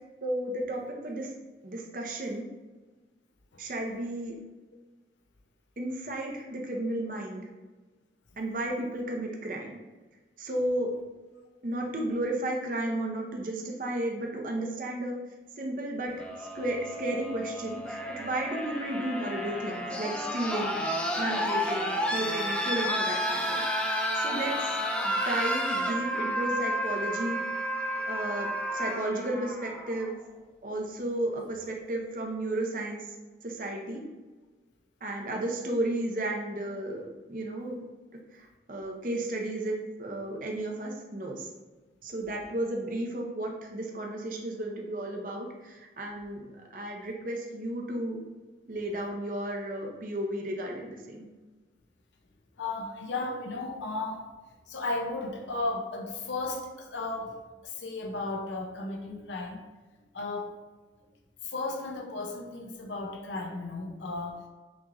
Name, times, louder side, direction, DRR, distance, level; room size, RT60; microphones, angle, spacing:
voice 1, 0.2-1.3 1.6-2.5 3.6-4.3 5.8-7.4 8.4-9.8 10.4-10.9 11.6-15.2 15.6-16.1 16.5-20.8 21.2-23.6 23.9-24.5 25.0-27.4 28.1-28.5 28.7-30.2 30.6-33.0 33.4-34.0 35.0-37.8 38.7-39.7 40.0-41.5 42.0-45.5 46.0-48.2 48.7-51.3, right 1 dB, 50° right, 0 dB, 0.7 m, -33 dB
sound 1, 16.1-30.1 31.3-31.4, equal, 5° left, 0.4 m, -31 dB
voice 2, 52.6-54.2 54.7-59.6 60.1-60.6 61.4-64.4, left 2 dB, 90° left, 2 dB, 0.7 m, -35 dB
6.0 x 3.0 x 2.6 m, 1.3 s
head